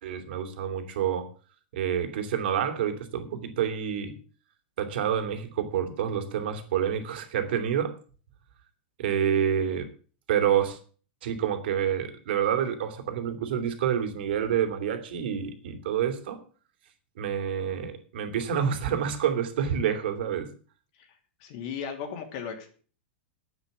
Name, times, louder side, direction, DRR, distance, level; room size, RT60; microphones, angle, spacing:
voice 1, 0.0-1.3 1.7-4.1 4.8-7.9 9.0-9.9 10.3-10.8 11.2-16.4 17.2-20.5, right 9 dB, 65° right, 7 dB, 2.7 m, -28 dB
voice 2, 21.4-22.7, left 7 dB, 45° left, 5 dB, 2.9 m, -36 dB
9.2 x 8.7 x 8.1 m, 0.41 s
supercardioid pair, 165°, 6 cm